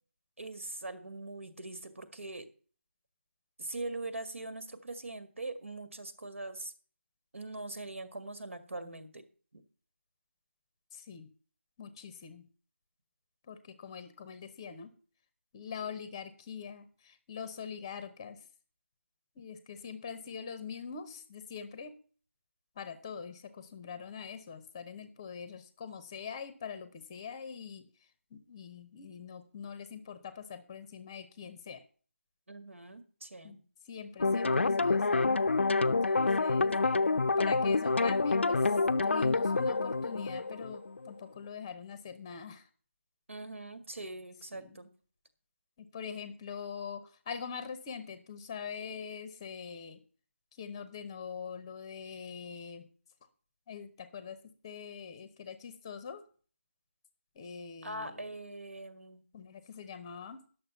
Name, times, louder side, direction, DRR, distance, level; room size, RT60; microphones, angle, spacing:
voice 1, 0.4-2.5 3.6-6.7 7.3-9.3 9.5-9.6 32.5-33.6 43.3-44.9 57.8-59.2, right 2 dB, 70° right, 11 dB, 1.9 m, -42 dB
voice 2, 10.9-11.3 11.8-12.5 13.5-14.9 15.5-18.4 19.4-21.9 22.8-27.8 28.3-31.8 33.4-33.6 33.9-35.3 35.8-36.7 37.4-42.7 44.5-44.8 45.8-50.0 50.5-52.9 53.7-56.2 57.3-58.4 59.3-60.4, left 6 dB, 15° left, 12 dB, 0.8 m, -43 dB
sound 1, 34.2-41.2, left 3 dB, 60° left, 0.5 m, -27 dB
10.5 x 6.8 x 7.0 m, 0.41 s
figure-of-eight pair, 165°, 7 cm